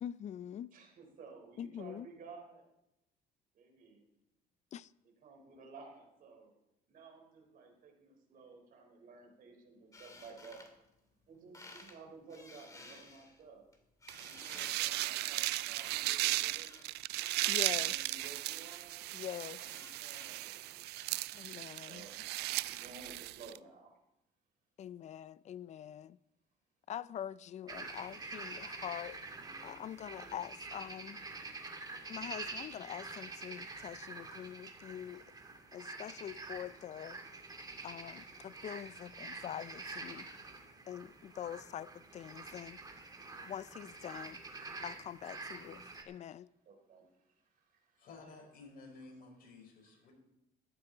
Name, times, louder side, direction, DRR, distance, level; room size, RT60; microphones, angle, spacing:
voice 1, 0.0-0.7 1.6-2.1 4.7-4.9 17.5-18.2 19.1-19.6 21.3-22.0 24.8-26.2 26.9-29.2 29.6-31.2 32.1-35.2 35.7-37.2 37.8-40.3 40.9-42.8 43.4-44.4 44.8-46.5, left 10 dB, 45° left, 0.4 m, -44 dB
voice 2, 0.7-2.7 3.5-4.0 5.2-6.5 6.9-10.6 11.3-13.7 14.2-16.8 17.7-19.0 19.5-20.9 21.9-22.2 22.6-23.9 32.3-32.4 37.7-37.8 46.7-48.1, right 4 dB, 55° right, 3.9 m, -55 dB
sound 1, 9.9-11.3 11.5-12.0 12.3-17.5 18.2-21.4, left 2 dB, 20° left, 2.4 m, -56 dB
sound 2, 14.1-23.6, right 17 dB, 80° right, 0.4 m, -36 dB
sound 3, 27.7-46.0, right 3 dB, 25° right, 1.9 m, -47 dB
voice 3, 48.0-50.1, left 3 dB, 60° left, 4.9 m, -53 dB
14.0 x 12.0 x 3.9 m
cardioid pair, 110°, 17 cm